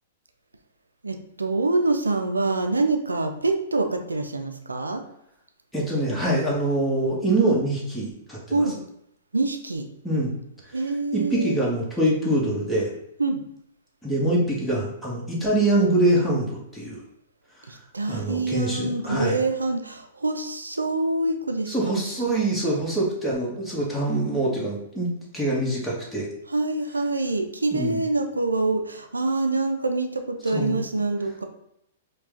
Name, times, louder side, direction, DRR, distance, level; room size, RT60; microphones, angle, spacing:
voice 1, 1.0-5.0 8.5-8.8 9.3-9.8 10.7-11.6 13.2-13.4 17.7-22.3 26.5-31.4, right 2 dB, 85° right, 6 dB, 0.5 m, -26 dB
voice 2, 5.7-8.7 10.0-10.3 10.6-10.8 11.1-12.9 14.0-17.0 17.6-17.7 18.1-19.5 21.7-26.3 27.7-28.0 30.5-30.8, right 1 dB, 5° left, -5 dB, 1.4 m, -24 dB
4.8 x 2.4 x 3.6 m, 0.77 s
figure-of-eight pair, 110°, 0 cm